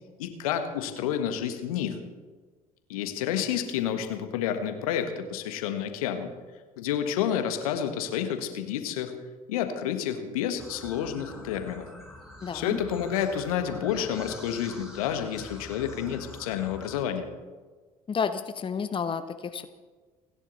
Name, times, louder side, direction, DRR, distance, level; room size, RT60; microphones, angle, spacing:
voice 1, 0.2-2.0 2.9-6.3 6.8-9.1 9.5-11.9 12.5-17.3, left 9 dB, 70° left, 7 dB, 1.5 m, -29 dB
sound 1, 10.6-17.0, left 1 dB, 5° right, 4.7 m, -45 dB
voice 2, 12.4-12.8 18.1-19.7, left 6 dB, 25° left, 9 dB, 1.0 m, -30 dB
29.0 x 10.5 x 4.1 m, 1.4 s
figure-of-eight pair, 55°, 19 cm